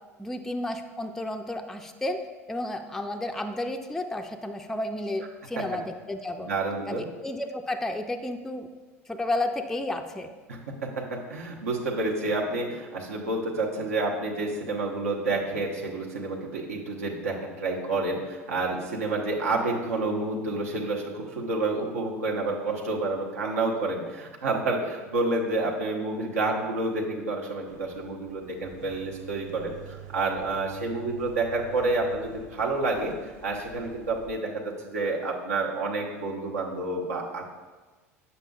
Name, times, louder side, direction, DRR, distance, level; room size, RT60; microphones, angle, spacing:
voice 1, 0.2-2.2 2.5-6.5 6.9-8.7 9.1-10.3, left 1 dB, 5° left, 5 dB, 0.4 m, -32 dB
voice 2, 6.5-7.1 10.5-37.4, right 2 dB, 75° right, -2 dB, 0.9 m, -29 dB
sound 1, 27.7-34.4, right 8 dB, 45° right, 0.7 m, -47 dB
8.1 x 5.3 x 2.3 m, 1.3 s
figure-of-eight pair, 70°, 8 cm